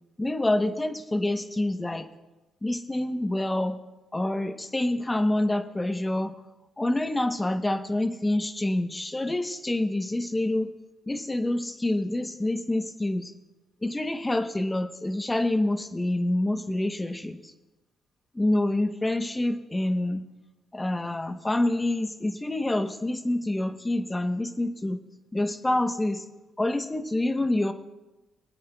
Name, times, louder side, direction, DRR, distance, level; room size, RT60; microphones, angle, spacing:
voice 1, 0.2-2.1 2.6-3.8 4.1-6.3 6.8-10.7 11.1-13.3 13.8-17.4 18.3-20.2 20.7-25.0 25.3-26.2 26.6-27.7, left 1 dB, 15° left, 8 dB, 0.9 m, -27 dB
25.0 x 9.2 x 2.3 m, 1.1 s
cardioid pair, 90°, 0 cm